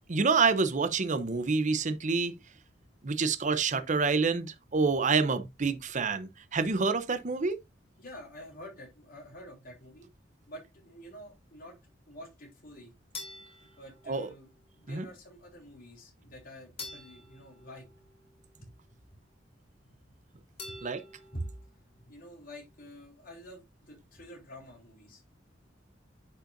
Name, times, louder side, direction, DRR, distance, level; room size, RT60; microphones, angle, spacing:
voice 1, 0.1-2.3 3.0-7.6 14.1-14.3 14.9-15.1 20.8-21.0, right 4 dB, 40° right, 0.7 m, -27 dB
voice 2, 8.0-10.1 10.5-11.8 12.1-12.9 13.8-14.5 14.8-17.9 18.6-18.7 19.8-19.9 20.7-20.8 21.3-21.5 22.0-25.2, equal, 50° left, 3.6 m, -47 dB
sound 1, 13.1-14.6 16.8-18.6 20.6-21.7, left 3 dB, 30° left, 3.1 m, -47 dB
10.0 x 5.5 x 2.6 m
head